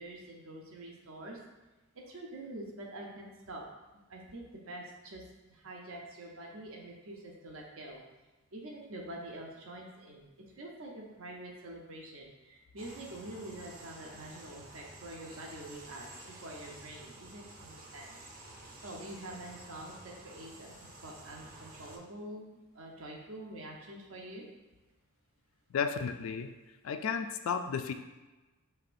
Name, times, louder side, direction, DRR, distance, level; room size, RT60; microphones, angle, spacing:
voice 1, 0.0-1.4 1.9-3.6 4.1-5.2 5.5-8.0 8.5-18.1 18.8-20.7 21.0-24.4, right 1 dB, 80° right, -1 dB, 0.8 m, -46 dB
sound 1, 12.8-22.0, right 2 dB, 40° right, 0.6 m, -51 dB
voice 2, 25.7-26.5 26.8-27.9, left 6 dB, 70° left, 7 dB, 0.3 m, -33 dB
5.6 x 3.3 x 2.5 m, 1.1 s
head